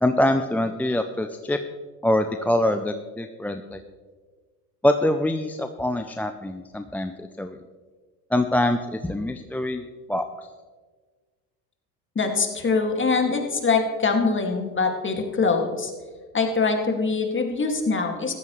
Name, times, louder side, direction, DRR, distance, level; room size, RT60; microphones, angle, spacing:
voice 1, 0.0-1.6 2.0-3.8 4.8-7.6 8.3-10.2, left 1 dB, 5° left, 7 dB, 0.4 m, -24 dB
voice 2, 12.2-15.9 16.3-18.3, left 4 dB, 25° left, 3 dB, 2.3 m, -23 dB
15.0 x 13.5 x 3.2 m, 1.4 s
hypercardioid pair, 70°, 47 cm